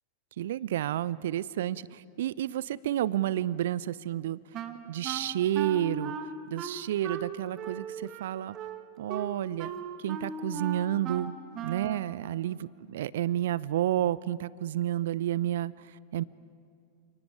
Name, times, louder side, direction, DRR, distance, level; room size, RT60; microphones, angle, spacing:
voice 1, 0.4-4.4 4.9-6.2 6.5-8.6 9.0-9.7 10.0-11.4 11.6-15.7 16.1-16.2, right 12 dB, 55° right, 21 dB, 0.6 m, -30 dB
Wind instrument woodwind instrument, 4.5-12.1, right 6 dB, 35° right, 1.7 m, -38 dB
29.5 x 29.0 x 4.8 m, 2.3 s
figure-of-eight pair, 90°, 0 cm